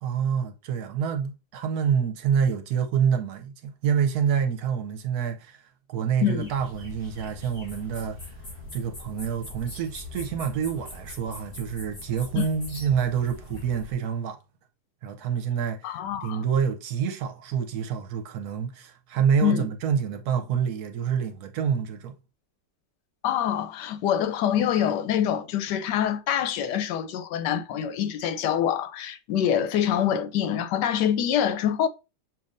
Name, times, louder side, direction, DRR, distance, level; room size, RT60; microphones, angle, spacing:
voice 1, 0.0-5.6 5.9-8.4 8.7-14.4 15.0-22.1, right 7 dB, 75° right, 1.1 m, -27 dB
sound 1, 6.4-13.9, left 1 dB, 45° left, 3.2 m, -42 dB
voice 2, 15.8-16.4 19.4-19.7 23.2-31.9, left 9 dB, 85° left, 1.2 m, -25 dB
6.8 x 2.7 x 2.5 m
omnidirectional pair, 1.8 m